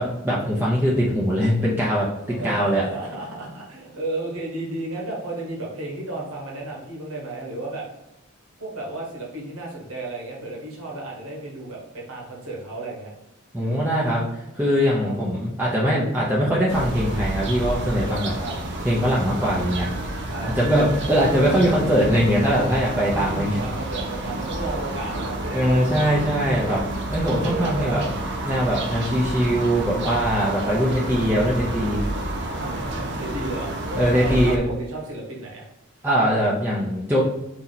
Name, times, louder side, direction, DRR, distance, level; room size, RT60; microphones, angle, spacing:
voice 1, 0.0-2.1 2.4-2.8 13.5-18.4 18.8-19.9 20.6-23.6 25.5-26.8 27.1-28.0 28.4-32.0 34.0-34.6 36.0-37.2, equal, 10° right, -6 dB, 0.7 m, -21 dB
voice 2, 2.2-7.9 8.6-13.1 15.0-15.1 18.4-18.5 20.3-20.5 23.1-25.8 27.2-28.0 30.6-30.8 32.5-33.7 34.1-35.6, right 2 dB, 85° right, -3 dB, 1.5 m, -33 dB
sound 1, 16.7-34.6, right 1 dB, 55° right, 0.7 m, -30 dB
4.2 x 2.9 x 4.0 m, 0.91 s
head